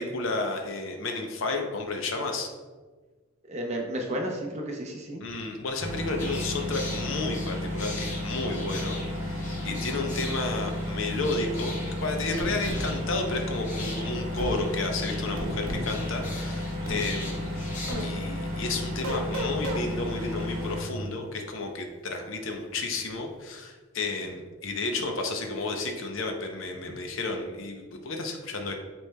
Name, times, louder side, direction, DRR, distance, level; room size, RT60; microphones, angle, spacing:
voice 1, 0.0-2.5 5.2-17.6 18.0-28.7, left 3 dB, 65° left, 3 dB, 0.6 m, -32 dB
voice 2, 3.4-5.2 9.6-9.9 17.0-17.2, right 1 dB, 30° right, 1 dB, 0.6 m, -33 dB
sound 1, 5.8-20.8, left 1 dB, 65° right, 1.5 m, -33 dB
sound 2, 6.2-18.0, left 2 dB, 35° left, 0.9 m, -42 dB
sound 3, 12.4-12.9 14.4-14.6 15.4-15.9 16.9-17.1 17.9-18.1 19.0-19.8, equal, 90° right, 0.9 m, -33 dB
7.7 x 3.1 x 2.2 m, 1.3 s
head